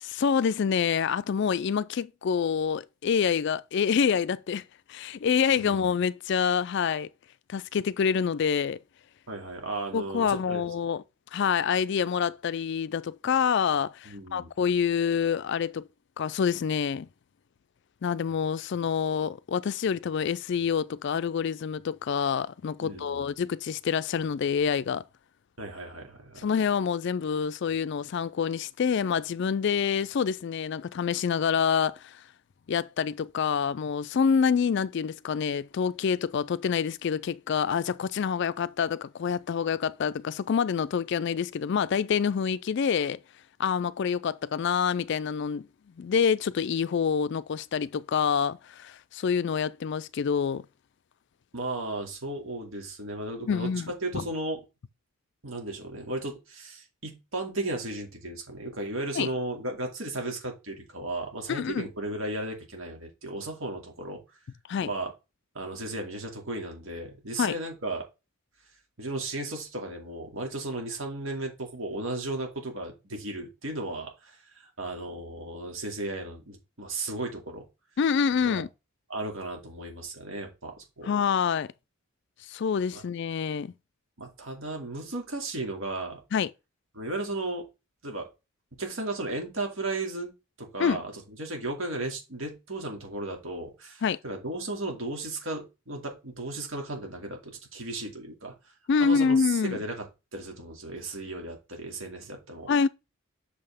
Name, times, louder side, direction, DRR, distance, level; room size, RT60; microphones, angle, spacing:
voice 1, 0.0-4.6 4.9-7.1 7.5-8.8 9.9-11.0 11.3-15.9 16.2-17.1 18.0-25.0 26.4-32.2 32.7-43.2 43.6-45.7 46.0-50.6 53.4-54.2 59.2-59.3 61.5-61.9 64.7-64.9 67.4-67.5 78.0-78.7 81.1-81.7 82.5-83.7 86.3-86.5 90.8-91.0 94.0-94.2 98.9-99.8 102.7-102.9, left 6 dB, 55° left, 0.3 m, -27 dB
voice 2, 5.6-5.9 9.3-10.7 14.0-14.5 22.8-23.3 25.6-26.4 51.5-54.6 55.4-64.2 64.8-65.1 65.5-68.0 69.0-77.6 78.4-78.6 79.1-81.1 82.9-83.0 84.2-86.2 86.9-87.7 88.0-88.3 88.8-90.3 90.6-91.1 91.4-98.5 99.0-100.1 100.3-102.7, right 2 dB, 65° right, 2.4 m, -35 dB
6.4 x 5.5 x 3.5 m
head